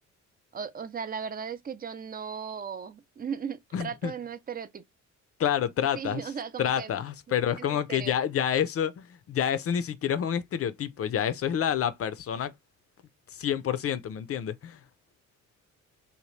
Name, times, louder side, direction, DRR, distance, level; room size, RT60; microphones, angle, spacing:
voice 1, 0.5-4.8 6.0-6.9 7.6-8.1, right 6 dB, 30° right, 0.5 m, -37 dB
voice 2, 3.7-4.1 5.4-6.2 6.6-12.5 13.3-14.8, left 9 dB, 50° left, 0.5 m, -28 dB
2.8 x 2.0 x 3.1 m
cardioid pair, 90°, 30 cm